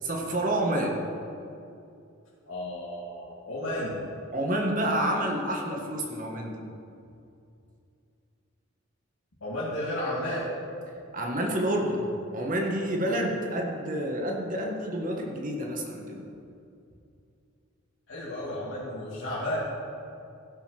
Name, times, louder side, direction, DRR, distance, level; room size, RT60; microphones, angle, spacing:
voice 1, 0.0-1.0 4.3-6.6 11.1-16.2, right 1 dB, 40° right, 1 dB, 1.6 m, -29 dB
voice 2, 2.5-4.0 9.4-10.5 18.1-19.6, left 1 dB, 85° left, -10 dB, 2.7 m, -33 dB
16.5 x 5.7 x 6.0 m, 2.6 s
head